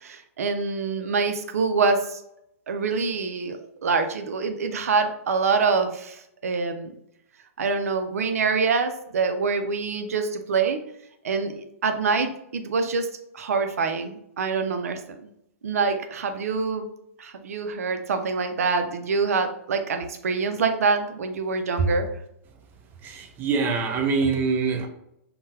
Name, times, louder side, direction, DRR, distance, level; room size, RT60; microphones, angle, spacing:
voice 1, 0.0-2.2 2.7-6.9 7.6-10.8 11.2-13.1 13.3-15.3 15.6-16.9 17.2-22.1, right 4 dB, 80° right, 7 dB, 0.4 m, -25 dB
voice 2, 23.0-24.9, right 5 dB, 25° right, 5 dB, 0.5 m, -24 dB
3.7 x 2.1 x 2.6 m, 0.78 s
hypercardioid pair, 135°, 8 cm